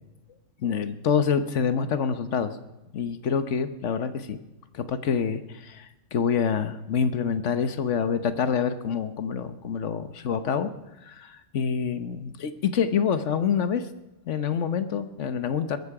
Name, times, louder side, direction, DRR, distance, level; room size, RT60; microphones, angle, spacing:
voice 1, 0.6-2.6 2.9-4.4 4.7-5.9 6.1-10.7 11.0-13.9 14.3-15.8, left 7 dB, 70° left, 11 dB, 1.3 m, -26 dB
21.0 x 13.5 x 4.9 m, 0.99 s
omnidirectional pair, 1.3 m